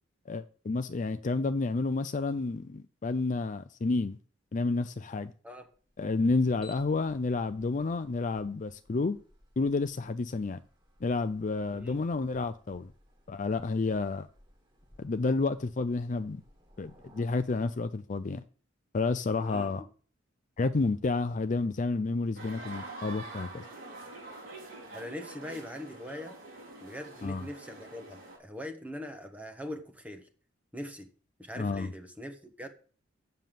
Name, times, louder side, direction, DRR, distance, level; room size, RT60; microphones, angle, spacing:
voice 1, 0.3-4.2 4.5-5.3 6.0-9.2 9.6-10.6 11.0-12.9 13.3-14.3 15.0-16.4 16.8-18.4 18.9-19.8 20.6-23.7 27.2-27.5 31.6-31.9, left 3 dB, 40° left, 0.4 m, -30 dB
sound 1, 5.7-17.2, equal, 25° right, 1.9 m, -60 dB
voice 2, 19.4-19.7 24.9-26.3 26.8-30.3 30.7-31.1 31.4-32.7, left 1 dB, 10° right, 1.0 m, -42 dB
sound 2, 22.3-28.4, right 2 dB, 85° right, 4.5 m, -45 dB
7.4 x 6.7 x 7.6 m
head